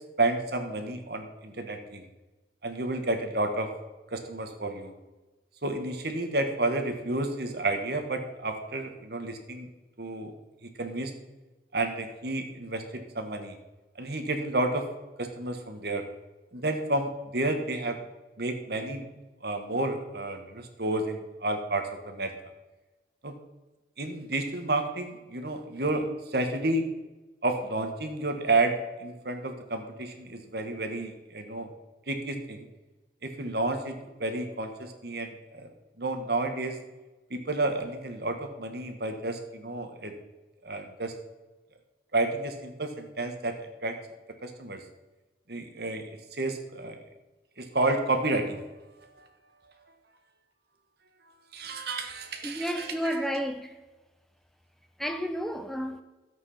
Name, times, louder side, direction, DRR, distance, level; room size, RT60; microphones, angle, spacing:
voice 1, 0.2-2.0 2.6-3.7 4.1-4.9 5.6-9.7 10.0-10.3 10.6-11.1 11.7-13.6 14.0-14.9 15.2-16.0 16.5-18.0 18.4-19.1 19.4-22.3 23.2-23.4 24.0-26.9 27.4-31.7 32.1-32.7 33.2-35.7 36.0-36.8 37.3-40.1 40.6-41.1 42.1-44.0 44.4-44.8 45.5-46.0 46.3-47.0 47.6-48.6 51.5-53.2, right 2 dB, 60° right, 1.7 m, -31 dB
voice 2, 52.4-53.8 55.0-56.0, equal, ahead, 0.6 m, -31 dB
13.0 x 8.2 x 5.7 m
head